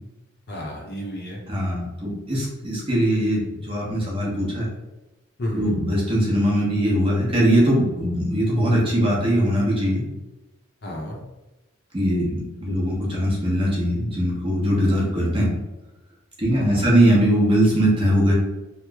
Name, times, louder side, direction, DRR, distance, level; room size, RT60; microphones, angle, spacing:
voice 1, 0.5-1.4 5.4-5.7 10.8-11.2 12.7-13.0 16.5-16.9, left 1 dB, 50° left, -1 dB, 0.6 m, -32 dB
voice 2, 1.5-4.7 5.5-10.0 11.9-15.6 16.4-18.3, equal, 25° right, -4 dB, 0.8 m, -21 dB
3.0 x 2.0 x 3.4 m, 1.0 s
head